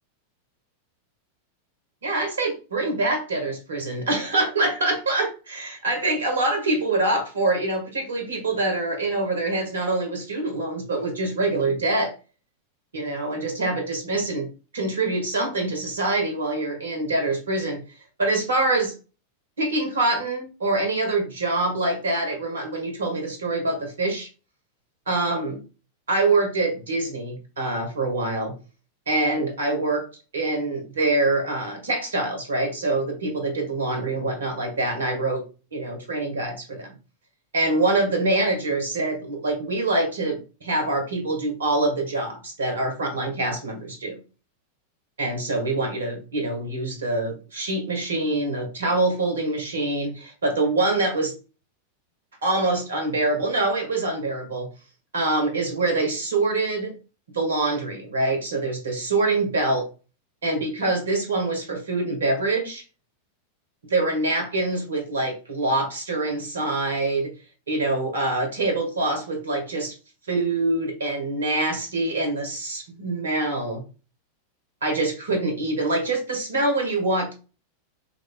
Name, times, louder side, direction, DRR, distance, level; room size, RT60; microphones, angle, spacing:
voice 1, 2.0-12.1 12.9-14.5 14.7-17.8 18.2-18.9 19.6-24.3 25.1-25.6 26.1-28.5 29.1-30.1 30.3-35.4 35.7-36.9 37.5-44.2 45.2-51.3 52.4-54.7 55.1-57.0 57.3-59.9 60.4-62.8 63.8-67.3 67.7-69.9 70.3-73.8 74.8-77.3, right 2 dB, 70° right, 4 dB, 1.5 m, -25 dB
5.8 x 3.3 x 2.2 m, 0.33 s
figure-of-eight pair, 90°, 0 cm